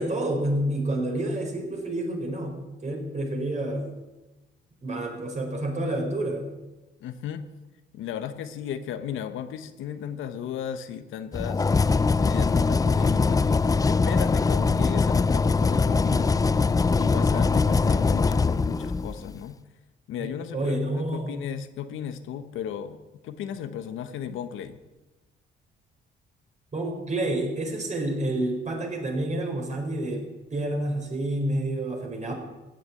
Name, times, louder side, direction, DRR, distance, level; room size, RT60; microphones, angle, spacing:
voice 1, 0.0-3.9 4.8-6.5 20.2-21.4 26.7-32.3, right 1 dB, 35° right, 2 dB, 4.6 m, -29 dB
voice 2, 7.0-7.4 7.9-16.7 17.0-19.6 20.1-23.0 23.2-24.8, left 9 dB, 85° left, 9 dB, 1.0 m, -35 dB
sound 1, 11.3-19.3, left 4 dB, 20° left, 0.4 m, -22 dB
15.5 x 6.9 x 9.6 m, 1.1 s
cardioid pair, 90°, 20 cm